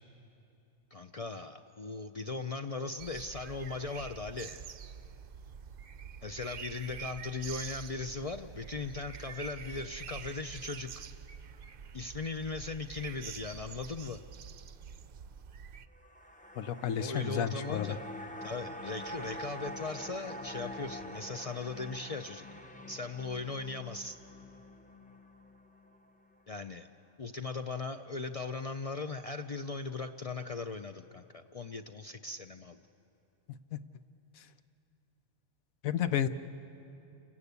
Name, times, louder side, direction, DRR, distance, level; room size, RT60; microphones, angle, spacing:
voice 1, 0.9-4.6 6.2-11.0 11.9-14.2 17.0-18.0 18.4-22.4 22.9-24.2 26.5-26.9 27.2-32.8, left 3 dB, 60° left, 7 dB, 0.3 m, -38 dB
sound 1, 3.0-15.9, right 7 dB, 55° right, 0.7 m, -46 dB
sound 2, 15.9-26.3 26.7-26.8, left 1 dB, 10° left, 0.7 m, -45 dB
voice 2, 16.6-18.0 33.7-33.8 35.8-36.3, left 9 dB, 90° left, 12 dB, 1.2 m, -31 dB
28.5 x 17.0 x 8.2 m, 2.8 s
omnidirectional pair, 1.4 m